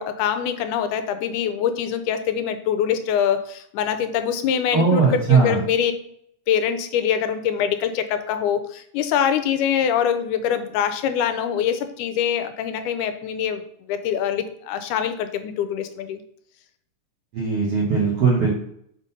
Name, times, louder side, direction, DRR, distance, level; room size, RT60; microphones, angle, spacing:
voice 1, 0.0-5.9 6.5-13.6 13.9-16.2, left 8 dB, 90° left, 10 dB, 2.1 m, -24 dB
voice 2, 4.7-5.6 17.3-18.5, right 5 dB, 55° right, -4 dB, 1.9 m, -19 dB
5.7 x 3.8 x 5.3 m, 0.69 s
omnidirectional pair, 3.5 m